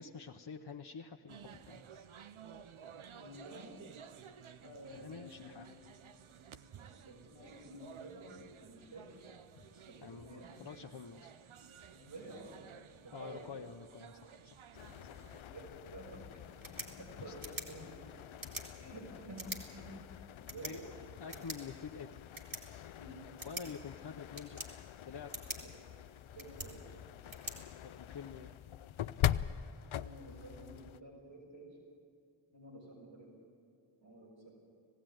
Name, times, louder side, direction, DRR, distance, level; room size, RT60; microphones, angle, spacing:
voice 1, 0.0-1.8 4.9-5.7 10.0-11.3 13.1-15.6 17.2-17.5 20.6-22.2 22.7-23.0 23.4-24.6 25.0-25.6 27.8-28.5, left 5 dB, 60° left, 2 dB, 0.8 m, -48 dB
sound 1, 1.3-15.4, right 7 dB, 90° right, 0.7 m, -55 dB
voice 2, 3.1-3.7 4.6-5.7 6.8-8.3 8.6-9.3 9.9-10.7 11.9-12.7 13.0-13.5 15.0-16.4 16.7-18.0 18.8-20.1 20.4-20.9 23.0-23.3 25.6-25.9 26.3-27.0 29.9-31.7 32.5-33.3 34.0-34.5, right 1 dB, 70° right, -6 dB, 5.8 m, -51 dB
sound 2, 14.7-31.0, left 11 dB, 80° left, 0.5 m, -43 dB
sound 3, 16.4-28.4, right 2 dB, 45° right, 3.4 m, -49 dB
19.0 x 15.5 x 9.1 m, 2.4 s
cardioid pair, 40°, 47 cm